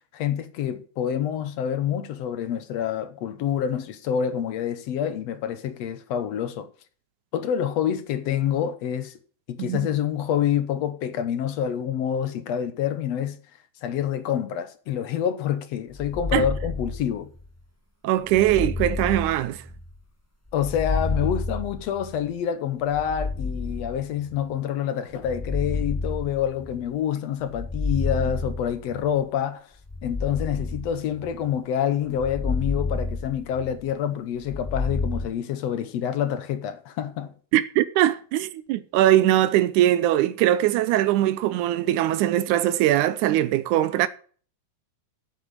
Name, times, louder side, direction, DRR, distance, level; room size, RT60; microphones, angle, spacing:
voice 1, 0.1-6.7 7.3-9.1 9.5-13.4 13.8-17.3 20.5-29.6 30.0-37.3, left 9 dB, 65° left, 2.0 m, -27 dB
sound 1, 15.9-17.5 18.3-20.0 20.5-22.3 22.9-24.4 25.1-26.9 27.4-29.1 29.8-31.5 32.1-33.9 34.4-35.3, left 3 dB, 10° left, 1.0 m, -30 dB
voice 2, 18.0-19.6 37.5-44.1, right 13 dB, 90° right, 2.1 m, -21 dB
8.6 x 8.2 x 7.3 m
omnidirectional pair, 3.5 m